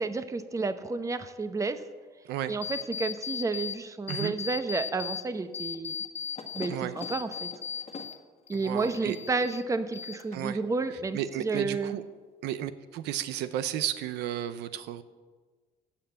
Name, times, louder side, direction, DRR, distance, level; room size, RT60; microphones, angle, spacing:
voice 1, 0.0-1.8 2.5-6.0 6.5-7.5 8.5-12.0, right 3 dB, 20° right, 10 dB, 0.8 m, -31 dB
sound 1, 2.6-3.8 4.1-5.2 5.5-8.2 8.5-9.6 9.9-10.5, left 7 dB, 40° left, 1.5 m, -37 dB
voice 2, 8.6-9.2 10.3-10.6 11.1-12.0 12.4-15.0, right 11 dB, 85° right, 12 dB, 0.7 m, -33 dB
15.0 x 5.8 x 8.7 m, 1.4 s
cardioid pair, 110°, 17 cm